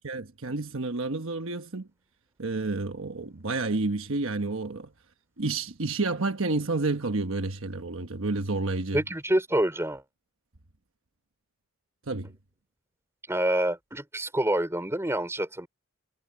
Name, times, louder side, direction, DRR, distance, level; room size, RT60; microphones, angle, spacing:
voice 1, 0.0-1.9 2.4-4.9 5.4-9.0 12.1-12.3, right 3 dB, 60° right, 1.2 m, -30 dB
voice 2, 8.9-10.0 13.3-15.7, right 1 dB, 10° right, 3.8 m, -27 dB
head